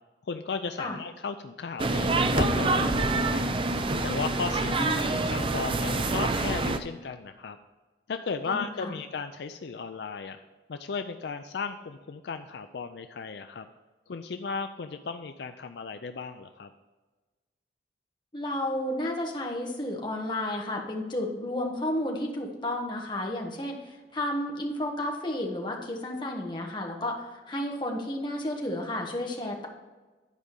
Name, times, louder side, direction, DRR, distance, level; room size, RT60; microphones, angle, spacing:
voice 1, 0.3-2.1 2.3-3.5 4.0-7.6 8.1-10.4 10.7-13.7 14.1-16.7, left 5 dB, 65° left, 8 dB, 0.4 m, -35 dB
sound 1, 1.8-6.8, right 2 dB, 30° right, 0.5 m, -26 dB
voice 2, 4.5-5.2 8.5-8.9 18.3-29.7, left 1 dB, 25° left, 1 dB, 1.3 m, -32 dB
10.5 x 4.9 x 5.3 m, 1.3 s
head